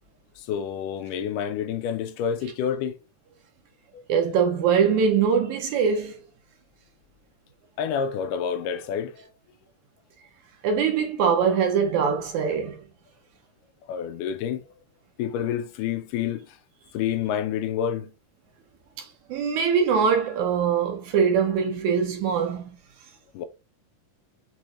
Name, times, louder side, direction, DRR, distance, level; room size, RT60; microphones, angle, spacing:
voice 1, 0.5-3.0 3.9-4.0 7.8-9.3 13.9-14.6 15.2-16.5 16.9-18.1 23.3-23.4, left 8 dB, 80° left, 2.1 m, -28 dB
voice 2, 4.1-6.2 10.6-12.8 19.0-22.6, right 6 dB, 70° right, 2.1 m, -22 dB
6.2 x 3.1 x 2.5 m
omnidirectional pair, 3.8 m